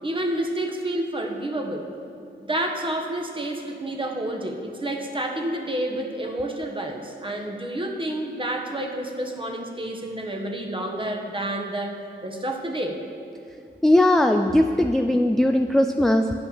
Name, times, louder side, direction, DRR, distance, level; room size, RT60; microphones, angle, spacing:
voice 1, 0.0-1.8 2.4-11.9 12.2-13.0, right 1 dB, 25° right, 2 dB, 1.1 m, -29 dB
voice 2, 13.8-16.3, left 1 dB, ahead, 5 dB, 0.3 m, -19 dB
8.7 x 5.5 x 7.2 m, 2.5 s
cardioid pair, 75°, 19 cm